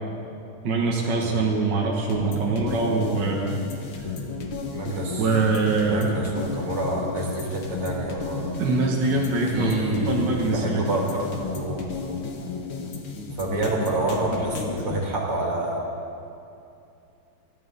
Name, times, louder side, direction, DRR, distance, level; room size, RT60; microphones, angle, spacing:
voice 1, 0.6-3.6 5.2-6.1 8.6-9.7 10.1-10.8, right 3 dB, 55° right, -2 dB, 2.0 m, -23 dB
sound 1, 2.1-15.0, left 4 dB, 65° left, 2.1 m, -33 dB
voice 2, 4.7-5.3 5.9-8.4 9.5-12.2 13.4-15.8, right 2 dB, 75° right, -2 dB, 3.4 m, -28 dB
23.0 x 14.0 x 4.1 m, 2.6 s
omnidirectional pair, 2.4 m